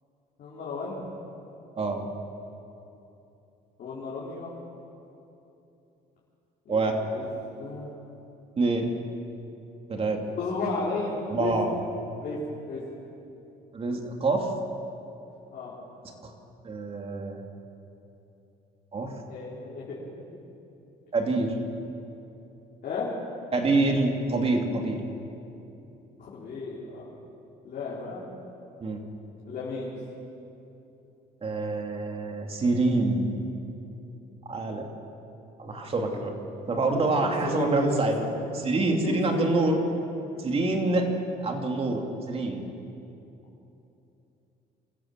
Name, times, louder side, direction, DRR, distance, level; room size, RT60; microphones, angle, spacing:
voice 1, 0.4-1.0 3.8-4.5 6.6-7.2 7.6-7.9 10.4-11.5 12.2-12.8 15.5-15.7 19.3-20.0 22.8-23.1 26.2-27.1 27.6-28.2 29.5-29.9 35.7-36.1 36.9-38.3 38.6-39.9, left 3 dB, 55° left, -7 dB, 4.5 m, -34 dB
voice 2, 1.8-2.1 6.7-6.9 8.6-8.9 9.9-10.2 11.3-11.7 13.7-14.5 16.2-16.3 16.6-17.4 18.9-19.2 21.1-21.5 23.5-25.0 28.8-29.0 31.4-33.4 34.5-34.9 35.6-36.3 36.7-38.2 38.5-39.8 40.4-41.1 41.4-42.6, right 3 dB, 35° right, 2 dB, 2.8 m, -26 dB
25.5 x 14.5 x 7.6 m, 2.9 s
cardioid pair, 110°, 17 cm